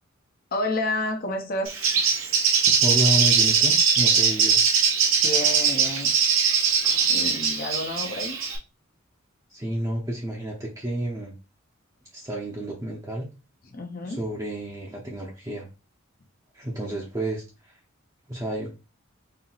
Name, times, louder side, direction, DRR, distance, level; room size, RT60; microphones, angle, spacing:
voice 1, 0.5-1.9 5.2-6.1 7.1-8.4 13.7-14.2, left 1 dB, 45° left, 4 dB, 0.7 m, -30 dB
Bird, 1.6-8.6, right 6 dB, 75° right, 1.0 m, -21 dB
voice 2, 2.8-4.6 9.5-11.4 12.1-13.3 14.0-15.7 16.5-17.8 18.3-18.7, right 1 dB, 15° right, -3 dB, 0.7 m, -30 dB
4.4 x 2.1 x 3.9 m, 0.29 s
head